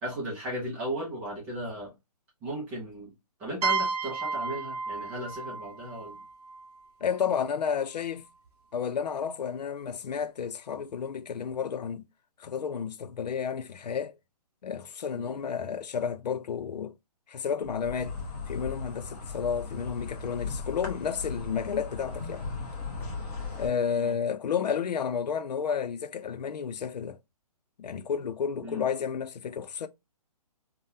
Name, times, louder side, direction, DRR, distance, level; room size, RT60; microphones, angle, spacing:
voice 1, 0.0-1.9 2.4-3.1 3.4-6.2 15.1-15.4 23.9-24.1 28.6-28.8, right 1 dB, 5° right, 0.4 m, -36 dB
sound 1, 3.6-7.2, right 4 dB, 75° right, 0.7 m, -33 dB
voice 2, 7.0-8.3 8.7-12.1 12.4-14.1 14.6-16.9 17.3-18.2 18.5-22.5 23.6-27.2 27.8-29.9, left 7 dB, 90° left, 0.5 m, -31 dB
Insect, 17.6-23.7, left 4 dB, 20° left, 0.8 m, -37 dB
3.7 x 2.1 x 2.6 m
hypercardioid pair, 165°, 20 cm